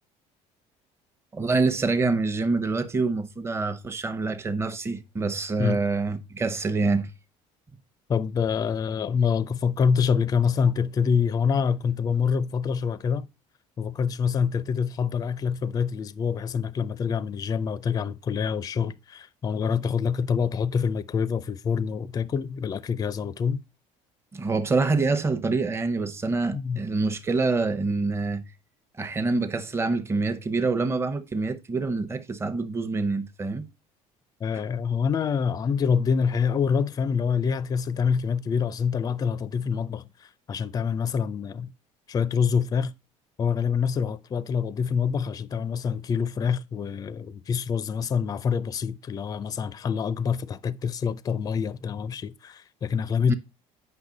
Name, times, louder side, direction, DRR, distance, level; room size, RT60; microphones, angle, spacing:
voice 1, 1.3-7.1 24.3-28.4 29.0-33.7 53.3-53.4, right 3 dB, 20° right, 0.9 m, -26 dB
voice 2, 8.1-13.3 13.8-23.6 26.5-26.8 34.4-41.7 42.1-42.9 43.4-53.3, left 6 dB, 30° left, 0.5 m, -26 dB
8.0 x 5.6 x 3.9 m
cardioid pair, 115°, 13 cm